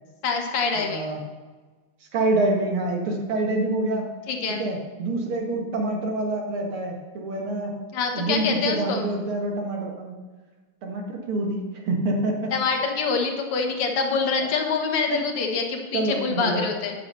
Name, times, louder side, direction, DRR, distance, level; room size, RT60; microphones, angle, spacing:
voice 1, 0.2-1.1 4.3-4.6 7.9-9.1 12.5-16.9, left 5 dB, 85° left, 3 dB, 2.3 m, -25 dB
voice 2, 0.7-1.2 2.1-4.1 4.6-7.7 8.2-10.1 10.8-11.6 11.9-12.5 15.1-15.2 15.9-16.6, right 2 dB, 75° right, 1 dB, 2.6 m, -26 dB
10.0 x 6.4 x 6.6 m, 1.3 s
omnidirectional pair, 2.4 m